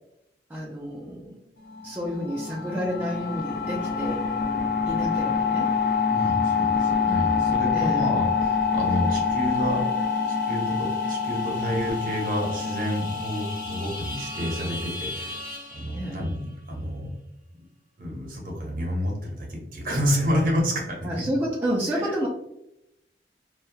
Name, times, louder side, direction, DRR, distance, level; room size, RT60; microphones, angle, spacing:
voice 1, 0.5-1.4 1.8-4.2 4.9-5.7 7.7-8.1 15.9-16.2 21.0-22.3, equal, 10° right, -6 dB, 0.3 m, -30 dB
sound 1, 1.7-15.1, left 5 dB, 65° left, 0.4 m, -26 dB
voice 2, 6.1-9.8 10.3-15.4 15.7-17.1 18.0-21.2 21.9-22.3, equal, 50° right, -1 dB, 0.7 m, -29 dB
sound 2, 8.5-16.5, left 1 dB, 45° left, 0.8 m, -40 dB
2.7 x 2.1 x 2.2 m, 0.84 s
head